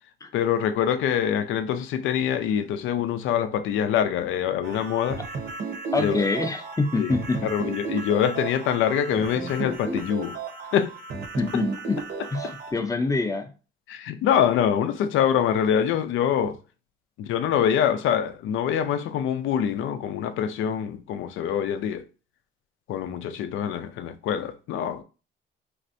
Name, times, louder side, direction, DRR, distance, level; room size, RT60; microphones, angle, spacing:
voice 1, 0.3-5.2 6.0-6.2 7.0-7.1 7.4-10.4 10.7-10.9 13.9-16.6 17.2-22.0 22.9-25.0, left 9 dB, 80° left, 0.4 m, -25 dB
sound 1, 4.6-12.7, right 4 dB, 55° right, 0.8 m, -34 dB
voice 2, 5.9-7.5 11.4-12.0 12.3-13.5, left 3 dB, 15° left, 0.5 m, -26 dB
3.3 x 2.5 x 2.6 m
cardioid pair, 90°, 20 cm